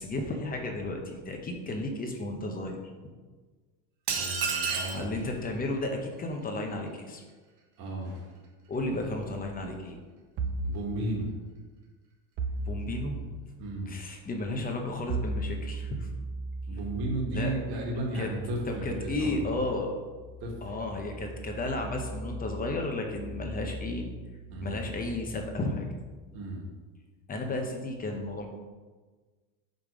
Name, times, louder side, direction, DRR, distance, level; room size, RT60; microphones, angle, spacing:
voice 1, 0.0-2.8 4.9-7.2 8.7-10.0 12.7-13.2 13.9-16.1 17.3-17.5 18.1-18.3 18.7-19.9 20.6-24.1 24.6-25.9 27.3-28.5, left 2 dB, 20° left, 3 dB, 0.7 m, -33 dB
voice 2, 4.1-5.1 7.8-8.3 10.6-11.3 12.5-12.6 13.6-13.9 16.7-19.6 20.4-20.7 24.5-24.8 26.3-26.7, right 2 dB, 45° right, 0 dB, 1.6 m, -34 dB
sound 1, 4.1-5.1, right 5 dB, 75° right, 1.5 m, -30 dB
sound 2, 10.4-10.8 12.4-13.3 15.1-26.5, right 2 dB, 25° right, 0.3 m, -38 dB
5.6 x 5.3 x 4.8 m, 1.4 s
supercardioid pair, 145°, 50 cm